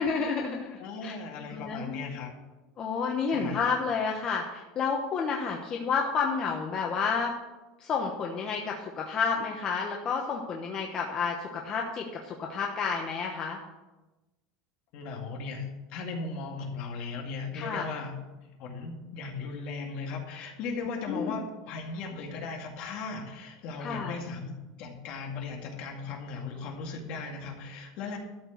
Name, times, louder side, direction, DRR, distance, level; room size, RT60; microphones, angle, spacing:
voice 1, 0.0-1.2 1.5-2.1 2.8-7.3 7.8-13.6 17.5-17.9 20.8-21.3 23.8-24.1, left 5 dB, 30° left, 0 dB, 1.1 m, -30 dB
voice 2, 0.8-2.3 3.3-3.6 14.9-18.2 18.6-28.2, left 4 dB, 55° left, 1 dB, 2.2 m, -37 dB
12.5 x 4.5 x 8.0 m, 1.1 s
supercardioid pair, 150°, 2 cm